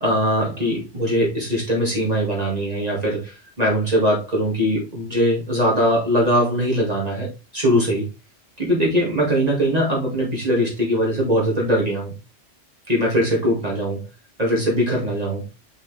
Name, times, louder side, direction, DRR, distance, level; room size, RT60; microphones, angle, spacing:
voice 1, 0.0-7.3 7.5-8.1 8.6-12.1 12.9-14.0 14.4-15.4, equal, 35° right, 2.2 m, -21 dB
5.9 x 5.0 x 3.2 m
omnidirectional pair, 1.2 m